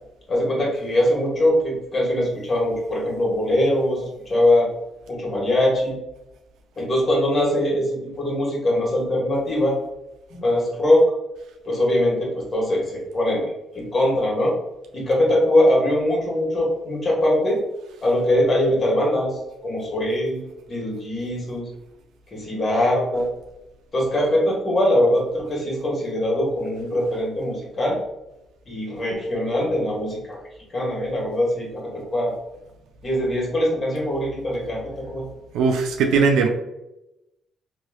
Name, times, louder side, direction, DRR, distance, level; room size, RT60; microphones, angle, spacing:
voice 1, 0.3-4.7 5.1-6.0 6.8-9.8 10.3-11.1 11.6-14.5 14.9-17.6 18.0-20.4 20.7-21.7 22.3-23.3 23.9-28.0 28.7-30.4 30.7-32.3 33.0-35.2, left 1 dB, 40° left, -2 dB, 1.4 m, -22 dB
voice 2, 35.5-36.5, right 5 dB, 80° right, 4 dB, 0.3 m, -19 dB
3.0 x 3.0 x 2.3 m, 0.92 s
cardioid pair, 75°, 0 cm